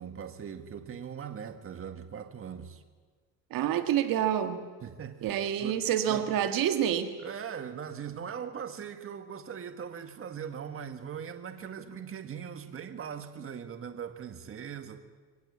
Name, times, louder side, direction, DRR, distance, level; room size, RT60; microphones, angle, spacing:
voice 1, 0.0-2.8 4.8-5.3 5.6-5.8 6.1-6.3 7.2-15.0, right 7 dB, 40° right, 1.8 m, -40 dB
voice 2, 3.5-4.6 5.2-7.1, right 10 dB, 70° right, 1.9 m, -27 dB
23.5 x 18.5 x 8.7 m
cardioid pair, 115°, 35 cm